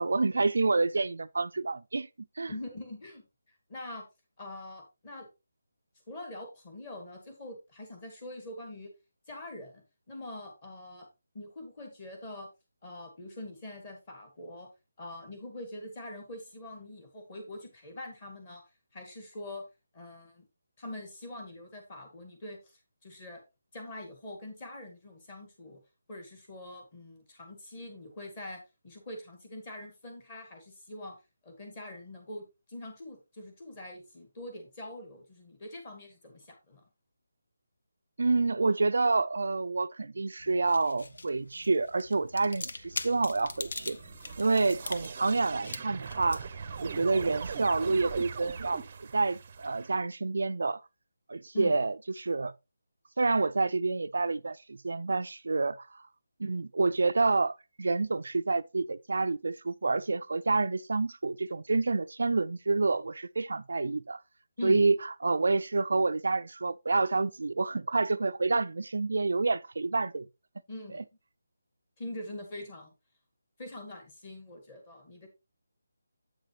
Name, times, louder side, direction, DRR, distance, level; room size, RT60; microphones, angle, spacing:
voice 1, 0.0-2.1 2.4-2.5 38.2-44.0 44.4-46.4 46.8-50.8 51.3-52.5 53.2-55.9 56.4-64.2 64.6-65.0 65.2-70.3 70.9-71.0, right 3 dB, 65° right, 0.3 m, -28 dB
voice 2, 2.5-4.0 4.4-5.3 6.1-8.9 9.3-11.1 11.3-12.5 12.8-14.7 15.0-18.6 18.9-19.6 19.9-20.5 20.8-23.4 23.7-25.8 26.1-31.2 31.4-36.8 51.5-51.8 64.6-64.8 70.7-71.0 72.0-72.9 73.6-75.3, left 1 dB, 20° left, 1.9 m, -44 dB
sound 1, 40.4-48.9, left 3 dB, 60° left, 0.7 m, -44 dB
sound 2, 42.8-49.9, right 6 dB, 25° right, 0.6 m, -41 dB
8.1 x 5.8 x 3.2 m
hypercardioid pair, 175°, 0 cm